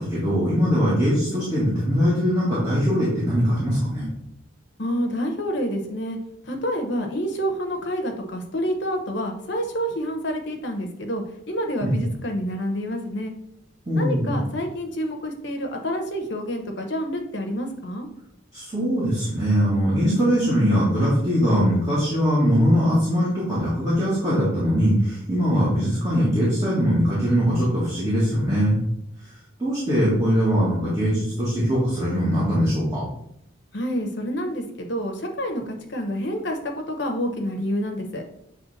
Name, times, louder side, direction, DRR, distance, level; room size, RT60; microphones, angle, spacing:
voice 1, 0.0-4.0 11.8-12.0 13.9-14.4 18.5-28.8 29.6-33.0, equal, 15° right, -9 dB, 1.6 m, -21 dB
voice 2, 4.8-6.2 6.4-13.3 14.0-18.1 33.7-36.6 36.9-38.2, equal, 55° left, 3 dB, 0.9 m, -28 dB
7.0 x 3.3 x 4.1 m, 0.75 s
head